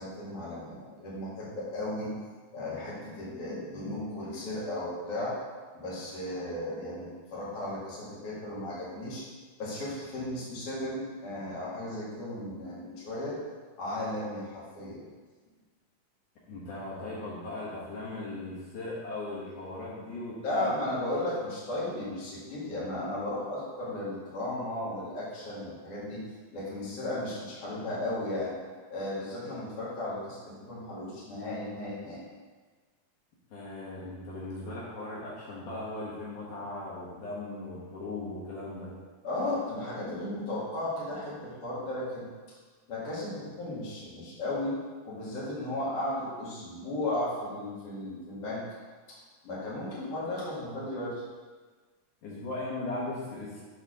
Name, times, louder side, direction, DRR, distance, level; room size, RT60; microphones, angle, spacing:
voice 1, 0.0-2.1 2.5-5.4 5.7-9.2 9.6-13.4 13.8-15.0 20.4-26.2 26.5-28.5 28.9-32.2 39.2-42.6 42.9-44.8 45.0-48.7 49.1-49.2 49.4-51.2, left 1 dB, 50° left, -8 dB, 2.9 m, -35 dB
voice 2, 16.5-20.8 33.5-38.9 52.2-53.6, left 2 dB, 75° left, -7 dB, 2.9 m, -38 dB
6.6 x 4.0 x 6.3 m, 1.4 s
omnidirectional pair, 3.6 m